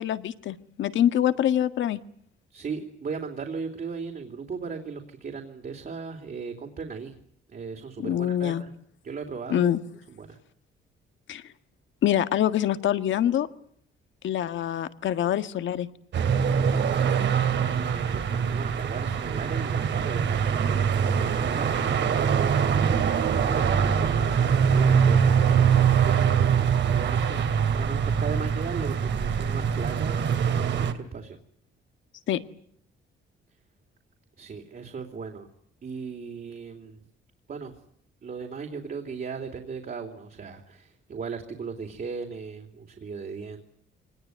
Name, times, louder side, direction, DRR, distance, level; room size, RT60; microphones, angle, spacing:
voice 1, 0.0-2.0 8.0-8.6 9.5-9.8 11.3-11.4 12.0-13.5 14.2-15.9 32.3-32.4, left 11 dB, 70° left, 11 dB, 1.7 m, -25 dB
voice 2, 2.5-7.2 7.5-8.7 9.0-9.7 10.1-10.4 17.0-17.4 17.8-22.9 23.5-31.4 34.4-35.5 35.8-37.0 37.5-37.7 38.2-43.7, right 5 dB, 45° right, 4 dB, 3.4 m, -37 dB
sound 1, 16.1-30.9, right 7 dB, 65° right, 2.7 m, -23 dB
24.5 x 20.0 x 9.4 m, 0.68 s
cardioid pair, 90°, 20 cm